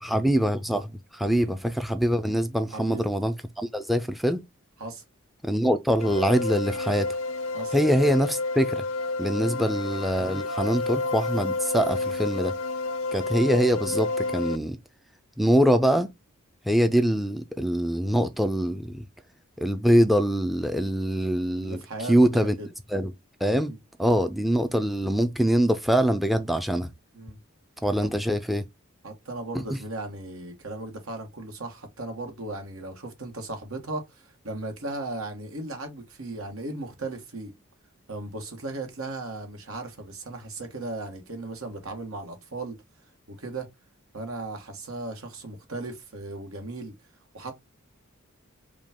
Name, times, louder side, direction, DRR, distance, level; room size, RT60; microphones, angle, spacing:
voice 1, 0.0-4.4 5.4-7.1 7.7-8.8 9.2-12.5 13.1-14.8 15.4-16.1 16.7-19.0 19.6-21.8 22.1-22.5 22.9-23.1 23.4-26.9 27.8-28.6 29.5-29.6, equal, ahead, 0.3 m, -24 dB
voice 2, 2.7-3.1 4.8-5.0 7.5-7.7 9.3-9.7 21.6-22.1 22.4-22.7 23.7-23.8 27.1-27.4 29.0-37.5 38.1-42.8 43.3-43.7 44.1-46.9 47.3-47.5, right 2 dB, 85° right, 1.3 m, -36 dB
sound 1, 6.0-14.6, left 3 dB, 75° left, 0.4 m, -30 dB
5.1 x 2.3 x 3.5 m
head